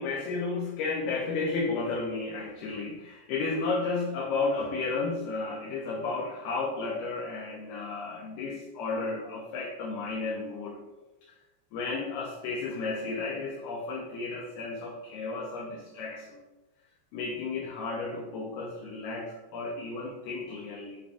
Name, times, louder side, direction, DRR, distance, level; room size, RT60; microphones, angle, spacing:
voice 1, 0.0-10.8 11.7-16.4 17.1-21.0, left 3 dB, 90° left, -3 dB, 2.1 m, -33 dB
5.5 x 2.5 x 3.5 m, 1.1 s
omnidirectional pair, 3.3 m